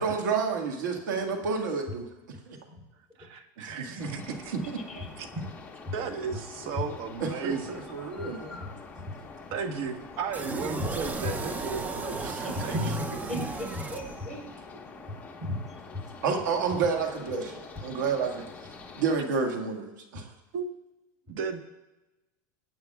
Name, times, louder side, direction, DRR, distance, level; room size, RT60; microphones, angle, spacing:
voice 1, 0.0-2.1 2.5-2.6 3.6-4.1 4.5-4.6 7.2-8.5 12.2-12.5 16.2-18.4 19.0-20.3, right 5 dB, 90° right, 3 dB, 1.9 m, -30 dB
voice 2, 3.2-4.6 5.2-5.3 5.9-7.8 9.5-12.3 12.6-13.2 20.5-20.7 21.3-21.6, right 6 dB, 60° right, 6 dB, 1.3 m, -35 dB
sound 1, 4.0-19.2, left 4 dB, 15° left, 1.3 m, -46 dB
voice 3, 4.9-5.5 5.9-6.0 7.5-7.6 8.0-9.1 10.8-10.9 12.4-13.0 13.3-14.4 15.4-15.8, left 1 dB, ahead, -3 dB, 3.7 m, -36 dB
sound 2, 10.3-14.5, right 3 dB, 15° right, 0.6 m, -35 dB
22.5 x 8.7 x 2.4 m, 1.0 s
supercardioid pair, 130°, 10 cm